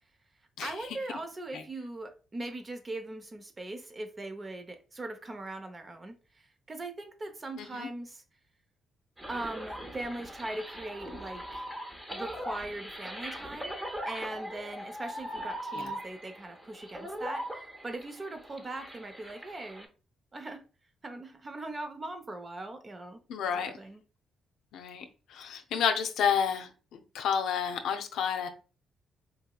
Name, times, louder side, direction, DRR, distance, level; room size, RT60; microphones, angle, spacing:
voice 1, 0.6-8.2 9.3-11.6 12.1-13.8 14.1-19.9 20.3-20.6 21.0-23.2 23.5-24.0, right 2 dB, 35° right, 0.7 m, -40 dB
voice 2, 7.6-7.9 15.7-15.8 23.3-23.7 24.7-25.0 25.3-28.5, left 7 dB, 75° left, 0.5 m, -30 dB
sound 1, 9.2-19.9, equal, 15° right, 1.0 m, -40 dB
4.0 x 2.8 x 2.3 m
supercardioid pair, 55°, 0 cm